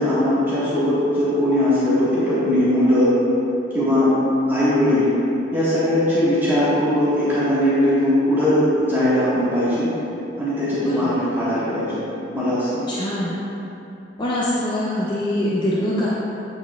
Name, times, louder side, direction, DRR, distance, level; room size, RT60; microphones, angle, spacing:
voice 1, 0.0-3.1 3.7-4.1 4.5-5.1 5.5-9.9 10.4-12.0 12.3-12.8, left 1 dB, 10° right, -12 dB, 1.4 m, -19 dB
voice 2, 10.8-11.2 12.9-13.4 14.2-16.1, left 1 dB, 25° left, -8 dB, 0.6 m, -24 dB
8.7 x 4.8 x 2.3 m, 2.9 s
head